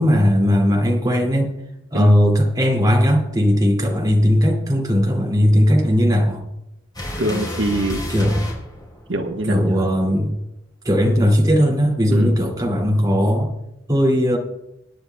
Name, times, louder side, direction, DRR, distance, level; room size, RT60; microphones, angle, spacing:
voice 1, 0.0-1.5 1.9-6.4 8.1-8.4 9.5-10.3 10.8-13.5 13.9-14.4, equal, 20° right, -1 dB, 2.3 m, -17 dB
sound 1, 6.9-9.4 10.8-12.1, left 1 dB, 20° left, 4.1 m, -31 dB
voice 2, 7.2-8.0 9.1-9.8 12.1-12.3, right 1 dB, 70° right, 2 dB, 1.2 m, -24 dB
25.5 x 10.0 x 2.3 m, 0.91 s
head